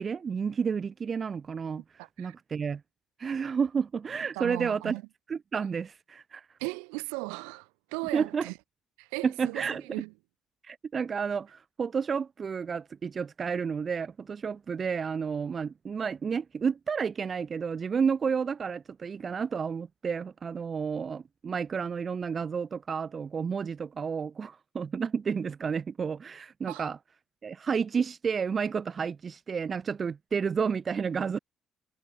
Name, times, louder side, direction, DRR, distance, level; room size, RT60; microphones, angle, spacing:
voice 1, 0.0-2.8 3.2-5.0 5.3-6.5 8.1-8.5 9.2-9.8 10.6-27.0 27.4-31.4, right 6 dB, 40° right, 5.0 m, -31 dB
voice 2, 2.0-2.4 4.3-5.0 6.6-8.5 9.0-10.1 26.7-26.8, right 40 dB or more, 75° right, 5.7 m, -37 dB
figure-of-eight pair, 50°, 0 cm